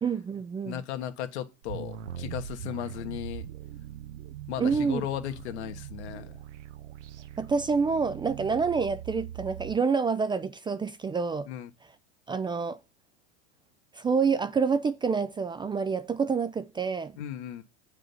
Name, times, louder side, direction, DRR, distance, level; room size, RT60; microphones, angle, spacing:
voice 1, 0.0-0.8 4.6-5.0 7.4-11.5 12.3-12.8 13.9-17.2, right 5 dB, 15° right, 0.4 m, -27 dB
voice 2, 0.6-3.5 4.5-6.4 11.5-11.7 17.2-17.6, left 11 dB, 75° left, 1.6 m, -36 dB
sound 1, 1.6-9.8, right 10 dB, 90° right, 0.9 m, -41 dB
7.8 x 5.1 x 5.5 m
hypercardioid pair, 105°, 35 cm